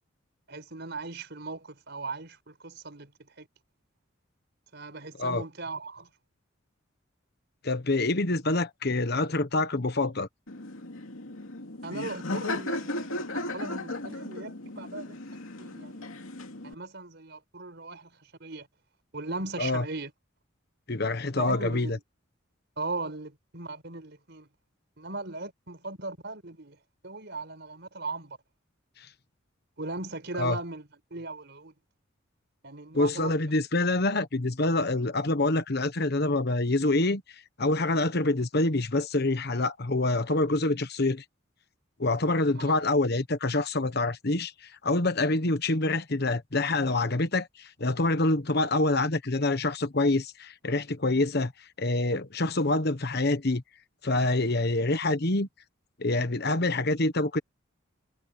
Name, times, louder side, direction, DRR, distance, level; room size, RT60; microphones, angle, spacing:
voice 1, 0.5-3.5 4.7-6.1 11.8-15.2 15.6-16.1 16.6-18.7 19.1-20.1 21.4-22.0 22.8-24.5 25.0-26.8 27.0-28.4 29.8-31.7 32.6-33.4 42.6-42.8, right 3 dB, 55° right, 5.9 m, -38 dB
voice 2, 7.6-10.3 19.6-19.8 20.9-22.0 30.4-30.6 32.9-37.2 37.6-41.2 42.0-51.5 51.8-53.6 54.0-55.5 56.0-57.4, left 2 dB, 50° left, 1.2 m, -26 dB
Laughter, 10.5-16.7, left 2 dB, 85° left, 2.6 m, -36 dB
head